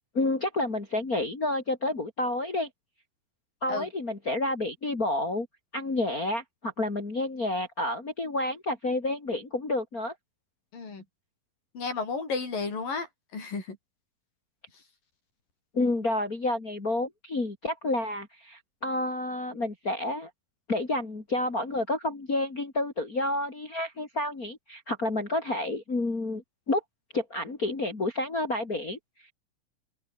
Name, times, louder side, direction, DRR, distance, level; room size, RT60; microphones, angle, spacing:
voice 1, 0.1-2.7 3.6-5.5 5.7-10.1 15.7-20.3 20.7-26.8 27.1-29.0, left 2 dB, 25° left, 3.9 m, -29 dB
voice 2, 10.7-11.0 11.7-13.1 13.3-13.8, left 4 dB, 75° left, 8.1 m, -32 dB
open air
omnidirectional pair, 4.0 m